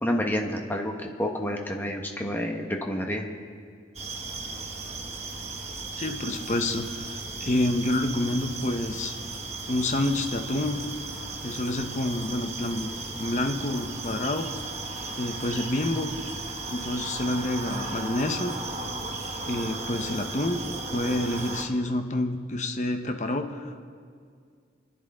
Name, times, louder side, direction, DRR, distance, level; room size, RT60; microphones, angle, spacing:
voice 1, 0.0-3.3, equal, 10° left, 1 dB, 1.2 m, -29 dB
sound 1, 3.9-21.6, right 3 dB, 35° right, 1.2 m, -36 dB
voice 2, 6.0-9.1 9.7-10.8 11.4-12.9 13.2-14.5 15.2-16.1 16.7-18.5 19.5-20.6 20.9-23.9, left 1 dB, 40° left, 5 dB, 0.9 m, -28 dB
27.5 x 10.0 x 3.7 m, 2.1 s
head